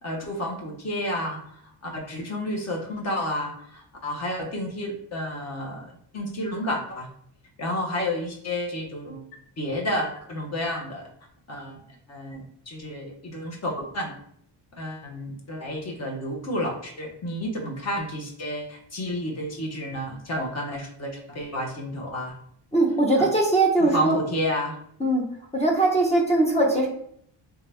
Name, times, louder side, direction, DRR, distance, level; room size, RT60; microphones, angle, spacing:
voice 1, 0.0-7.1 7.6-9.3 9.6-11.1 11.5-11.8 12.1-14.1 14.7-22.3 23.2-23.3 23.8-24.7, left 1 dB, 35° left, -1 dB, 0.9 m, -31 dB
voice 2, 22.7-24.2 25.0-25.2 25.5-26.9, right 2 dB, 15° left, -1 dB, 0.5 m, -20 dB
3.4 x 2.7 x 3.3 m, 0.68 s
cardioid pair, 150°, 46 cm